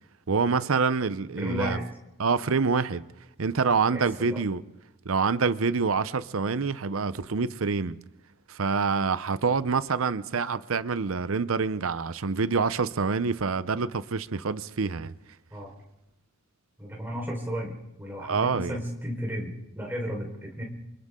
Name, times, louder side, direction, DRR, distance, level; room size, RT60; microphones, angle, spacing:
voice 1, 0.3-1.8 2.2-3.0 3.4-4.6 5.1-8.0 8.5-15.1 18.2-18.8, right 5 dB, 85° right, 0.7 m, -26 dB
voice 2, 1.4-1.8 3.9-4.4 15.5-15.7 16.8-20.6, equal, 10° right, 4.5 m, -34 dB
29.0 x 25.0 x 3.8 m
head